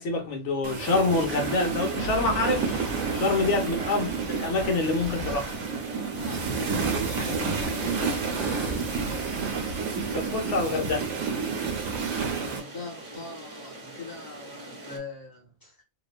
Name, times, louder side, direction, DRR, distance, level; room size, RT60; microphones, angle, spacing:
voice 1, 0.0-2.8 3.1-5.6 10.1-11.1, left 3 dB, 65° left, 1.0 m, -26 dB
sound 1, 0.6-12.6, right 5 dB, 65° right, 1.0 m, -30 dB
Thunder, 1.0-11.9, left 1 dB, 90° left, 1.0 m, -41 dB
sound 2, 1.4-15.0, right 1 dB, 30° right, 0.7 m, -44 dB
voice 2, 3.4-3.7 5.9-8.9 12.4-15.8, left 3 dB, 15° left, 1.0 m, -42 dB
3.0 x 2.0 x 2.3 m
omnidirectional pair, 1.4 m